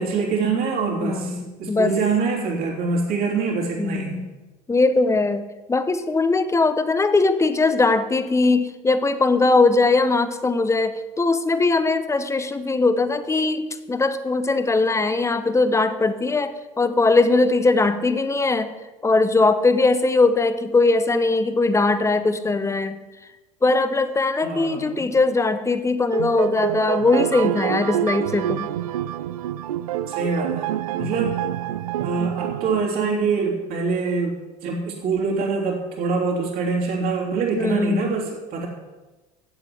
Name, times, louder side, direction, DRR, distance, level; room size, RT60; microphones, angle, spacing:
voice 1, 0.0-1.3 1.6-4.2 24.4-25.0 30.1-31.4 32.0-38.7, right 4 dB, 55° right, -1 dB, 3.2 m, -25 dB
voice 2, 1.0-1.9 3.8-4.3 4.7-5.4 5.7-18.7 19.0-23.0 23.6-28.7 37.5-38.2, left 3 dB, 15° left, 11 dB, 0.9 m, -20 dB
sound 1, 26.1-32.9, right 12 dB, 80° right, 0.4 m, -27 dB
8.0 x 7.9 x 7.7 m, 1.1 s
hypercardioid pair, 75°, 18 cm